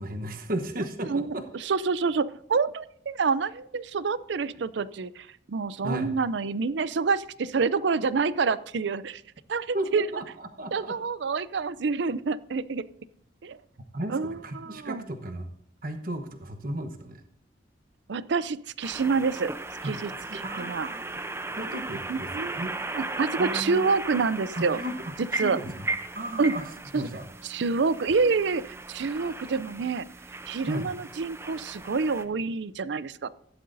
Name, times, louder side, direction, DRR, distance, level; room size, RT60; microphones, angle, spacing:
voice 1, 0.0-1.4 4.5-4.6 5.8-6.1 9.7-10.9 13.9-15.5 15.8-17.2 19.8-20.0 20.3-21.1 21.5-22.3 22.6-22.7 23.4-23.8 24.6-25.9 26.1-26.7 26.9-27.2 30.6-30.9, right 1 dB, 50° right, 6 dB, 1.1 m, -34 dB
voice 2, 1.1-9.2 9.5-10.1 10.7-12.9 13.4-13.6 14.1-15.0 18.1-19.5 19.8-20.9 22.1-22.6 22.9-24.8 25.4-25.6 26.4-26.5 26.9-27.1 27.4-30.1 30.5-33.3, right 4 dB, 65° right, 17 dB, 0.5 m, -27 dB
sound 1, 18.8-32.3, right 2 dB, 15° right, 0.6 m, -37 dB
15.0 x 11.5 x 2.6 m, 0.68 s
head